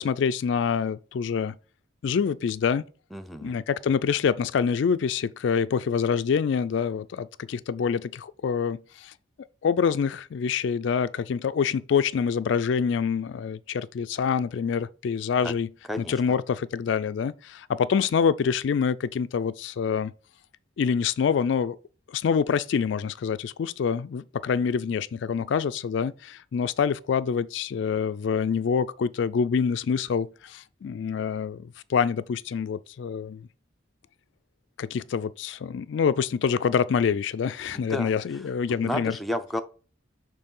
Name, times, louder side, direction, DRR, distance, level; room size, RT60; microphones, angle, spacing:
voice 1, 0.0-1.5 2.0-2.8 3.4-9.1 9.6-15.7 16.0-20.1 20.8-21.8 22.1-33.4 34.8-39.2, left 6 dB, 65° left, 0.3 m, -26 dB
voice 2, 3.1-3.6 15.4-15.5 15.9-16.4 37.7-38.4 38.8-39.6, left 1 dB, ahead, 0.4 m, -32 dB
6.6 x 3.2 x 5.3 m
head